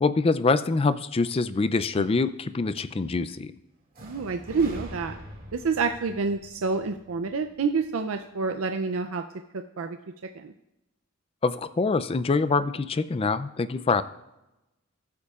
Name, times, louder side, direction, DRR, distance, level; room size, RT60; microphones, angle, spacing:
voice 1, 0.0-3.5 11.4-14.0, left 4 dB, 30° left, 13 dB, 0.4 m, -25 dB
sound 1, 3.9-7.8, equal, 45° right, 2.2 m, -44 dB
voice 2, 4.0-5.2 5.5-9.2 9.8-10.0 10.4-10.5, right 4 dB, 75° right, 6 dB, 0.5 m, -28 dB
19.5 x 8.4 x 2.4 m, 0.95 s
head